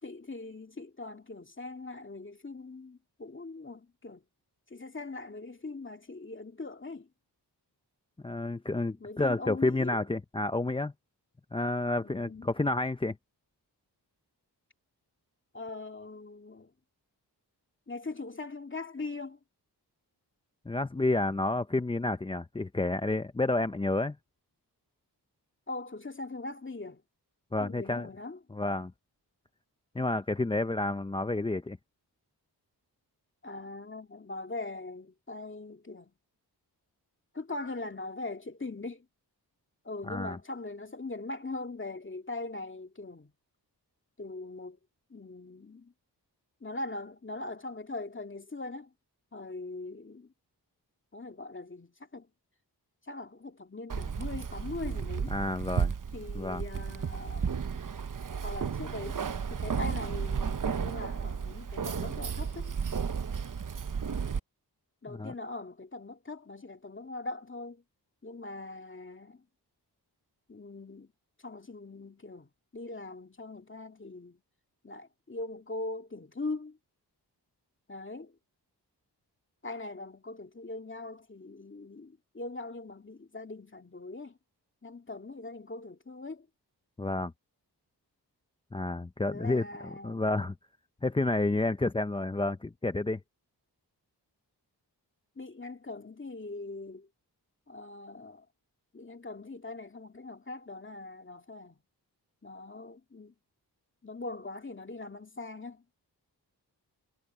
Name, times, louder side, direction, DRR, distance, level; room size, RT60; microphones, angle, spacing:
voice 1, 0.0-4.2 4.7-7.1 9.0-10.0 12.0-12.5 15.5-16.7 17.9-19.4 25.7-27.0 27.6-28.4 33.4-36.1 37.3-39.1 39.8-43.3 44.2-44.8 45.1-45.9 46.6-48.9 49.3-50.3 51.1-52.3 53.0-55.3 56.1-57.6 58.4-59.2 59.5-62.7 65.0-67.8 68.2-69.4 70.5-71.1 71.4-74.4 74.8-76.8 77.9-78.4 79.6-84.4 84.8-86.5 89.3-90.2 95.4-97.1 97.7-98.5 98.9-101.8 102.4-103.3 104.0-105.8, left 2 dB, 30° left, 2.2 m, -41 dB
voice 2, 8.2-10.9 11.5-13.1 20.7-24.2 27.5-28.1 28.5-28.9 29.9-31.8 40.1-40.4 55.3-55.9 56.3-56.6 65.1-65.3 87.0-87.3 88.7-90.5 91.0-93.2, left 2 dB, 15° left, 0.5 m, -30 dB
Keys jangling, 53.9-64.4, right 6 dB, 50° right, 1.0 m, -33 dB
cardioid pair, 70°, 42 cm